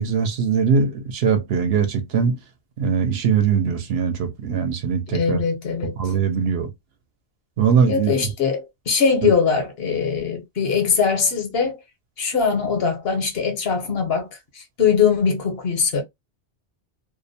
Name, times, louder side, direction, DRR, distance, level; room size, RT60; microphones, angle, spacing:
voice 1, 0.0-2.4 2.8-5.4 6.0-6.7 7.6-8.1 9.2-9.3, right 6 dB, 75° right, 0.8 m, -21 dB
voice 2, 5.1-6.0 7.9-11.8 12.2-14.3 14.8-16.0, left 6 dB, 70° left, 1.1 m, -21 dB
2.5 x 2.1 x 2.5 m
omnidirectional pair, 1.1 m